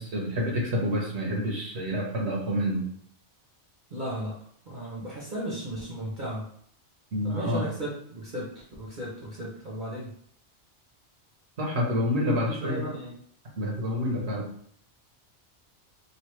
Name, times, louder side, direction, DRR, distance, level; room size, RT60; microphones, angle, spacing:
voice 1, 0.0-2.9 7.1-7.7 11.6-12.9 13.6-14.5, equal, 70° right, -2 dB, 1.2 m, -28 dB
voice 2, 3.9-4.4 4.7-6.5 7.2-10.1 12.3-13.1, right 1 dB, 50° right, -5 dB, 0.9 m, -35 dB
3.1 x 2.6 x 3.0 m, 0.63 s
omnidirectional pair, 1.2 m